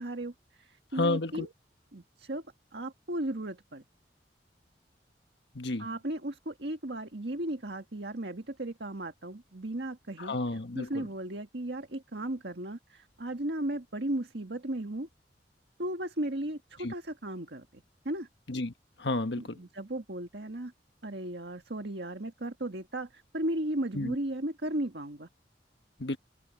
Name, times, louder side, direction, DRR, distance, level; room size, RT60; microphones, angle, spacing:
voice 1, 0.0-1.5 1.9-2.4 2.7-3.8 5.8-10.4 10.7-15.1 15.8-18.3 19.4-20.7 21.0-25.3, right 1 dB, 65° right, 1.9 m, -35 dB
voice 2, 0.9-1.5 5.5-5.9 10.2-11.1 16.8-16.9 18.5-18.7 19.0-19.6 23.9-24.1 26.0-26.2, left 2 dB, 75° left, 1.5 m, -31 dB
head